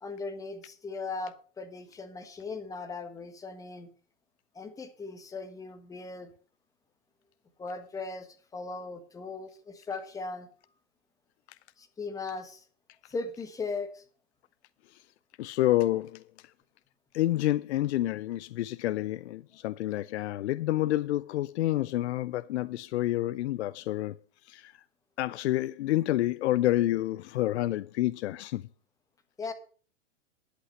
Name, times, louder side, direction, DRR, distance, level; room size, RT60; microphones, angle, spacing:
voice 1, 0.0-3.9 4.5-6.3 7.6-10.5 11.8-12.6 13.1-14.0 29.4-29.5, left 3 dB, 10° left, 1.4 m, -38 dB
voice 2, 15.4-16.2 17.1-24.2 24.5-24.7 25.2-28.6, left 15 dB, 60° left, 0.5 m, -28 dB
11.5 x 8.2 x 6.4 m
hypercardioid pair, 150°, 38 cm